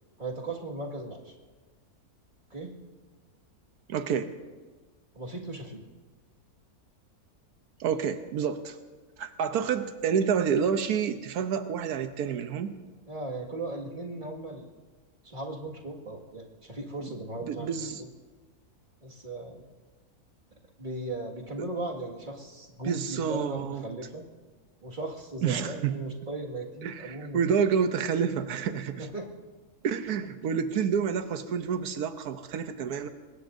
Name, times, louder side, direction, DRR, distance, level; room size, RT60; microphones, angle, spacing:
voice 1, 0.2-1.3 2.5-2.7 5.1-5.8 13.1-14.7 15.2-17.7 18.0-18.1 19.0-19.7 20.8-24.2 24.8-27.4 29.0-29.3, right 2 dB, 30° right, -2 dB, 2.1 m, -37 dB
voice 2, 3.9-4.3 7.8-8.8 9.2-12.8 17.4-18.0 22.8-23.8 25.4-26.0 26.8-29.1 29.8-33.1, right 7 dB, 80° right, 9 dB, 1.3 m, -28 dB
24.0 x 20.0 x 2.6 m, 1.3 s
omnidirectional pair, 1.6 m